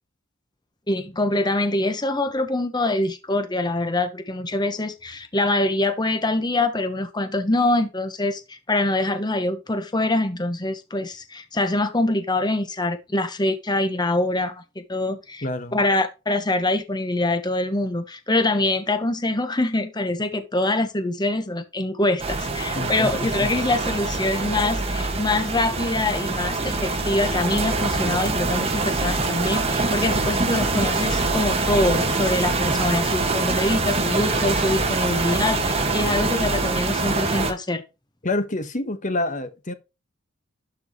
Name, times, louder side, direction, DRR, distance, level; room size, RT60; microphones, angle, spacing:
voice 1, 0.9-15.4 15.7-37.8, left 2 dB, 20° left, 1.1 m, -24 dB
voice 2, 15.4-15.8 22.7-23.1 23.4-23.5 38.2-39.7, left 2 dB, 35° left, 1.4 m, -27 dB
sound 1, 22.2-37.5, right 3 dB, 30° right, 1.7 m, -24 dB
12.0 x 4.7 x 3.0 m
head